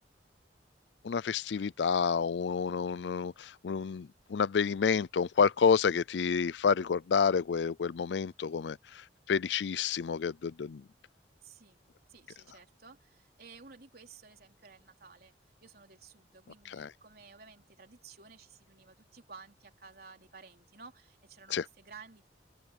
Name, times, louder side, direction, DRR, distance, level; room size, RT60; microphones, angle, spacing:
voice 1, 1.0-10.8 16.7-16.9 21.5-21.7, left 6 dB, 75° left, 0.4 m, -29 dB
voice 2, 11.4-11.8 12.1-15.3 15.6-22.3, right 5 dB, 60° right, 4.0 m, -54 dB
head